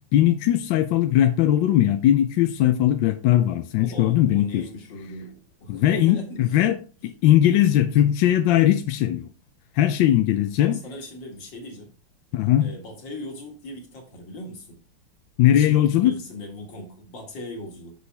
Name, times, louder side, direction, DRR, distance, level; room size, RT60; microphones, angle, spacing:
voice 1, 0.1-4.6 5.7-6.8 7.2-9.3 9.8-10.8 12.3-12.7 15.4-16.1, left 12 dB, 75° left, 1.2 m, -19 dB
voice 2, 3.8-6.7 10.6-11.9 12.6-14.8 15.6-17.9, left 1 dB, 55° left, 2.5 m, -38 dB
6.9 x 6.3 x 3.3 m
omnidirectional pair, 2.4 m